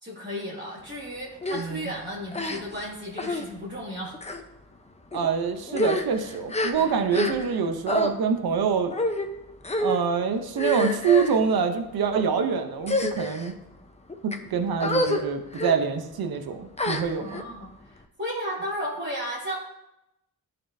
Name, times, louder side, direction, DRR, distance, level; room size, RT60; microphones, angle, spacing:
voice 1, 0.0-4.2 6.8-6.9 17.2-19.6, equal, 30° right, -8 dB, 2.1 m, -34 dB
sound 1, 1.4-1.6 2.3-2.8 3.2-3.4 4.1-4.4 5.1-5.3 5.7-7.6 7.9-8.1 8.9-9.3 9.6-10.0 10.5-11.4 12.1-12.3 12.8-13.5 14.1-14.4 14.8-15.2 15.5-15.8 16.8-17.4, left 1 dB, 20° left, 0.7 m, -27 dB
voice 2, 1.5-1.9 5.1-8.9 9.8-13.5 14.2-17.4, right 6 dB, 80° right, 6 dB, 0.7 m, -25 dB
11.0 x 4.3 x 2.6 m, 0.88 s
cardioid pair, 60°, 36 cm